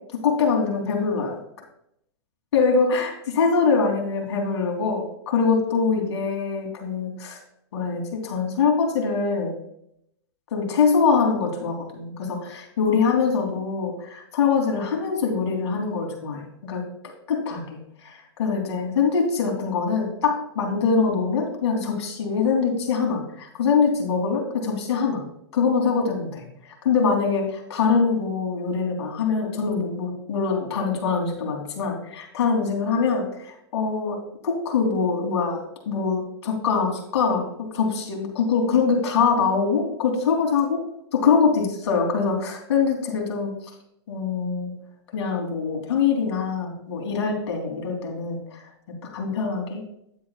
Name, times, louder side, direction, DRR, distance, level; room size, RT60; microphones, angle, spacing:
voice 1, 0.1-1.4 2.5-7.4 7.7-9.5 10.5-16.8 17.3-17.6 18.0-25.2 25.5-26.4 26.8-33.3 33.7-34.2 34.4-40.8 41.1-43.5 44.1-44.7 45.1-48.4 49.0-49.8, left 5 dB, 70° left, 1 dB, 3.3 m, -23 dB
10.5 x 8.4 x 2.5 m, 0.75 s
hypercardioid pair, 145°, 14 cm